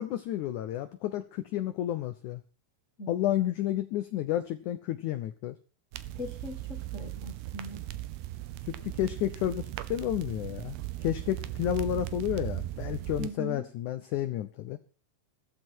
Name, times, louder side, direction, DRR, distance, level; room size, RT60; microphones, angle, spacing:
voice 1, 0.0-2.4 3.1-5.6 8.7-10.8 11.0-14.8, left 12 dB, 80° left, 10 dB, 1.8 m, -31 dB
voice 2, 3.0-3.5 6.2-7.8 13.2-13.6, left 1 dB, 50° left, 3 dB, 0.9 m, -40 dB
sound 1, 5.9-13.3, right 15 dB, 80° right, 2.9 m, -38 dB
15.5 x 14.0 x 4.5 m, 0.37 s
omnidirectional pair, 4.5 m